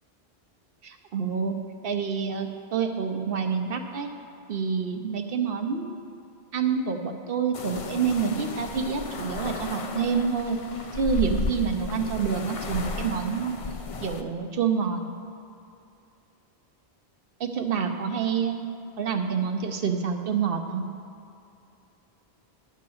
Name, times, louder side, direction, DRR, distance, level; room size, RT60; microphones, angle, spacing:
voice 1, 0.8-1.6 1.8-4.1 4.5-6.0 6.5-10.6 10.9-13.5 14.0-15.0 17.4-18.6 19.0-20.8, right 6 dB, 65° right, 5 dB, 0.9 m, -27 dB
sound 1, 7.5-14.2, left 3 dB, 45° left, 0.5 m, -34 dB
10.5 x 4.9 x 6.9 m, 2.6 s
omnidirectional pair, 1.1 m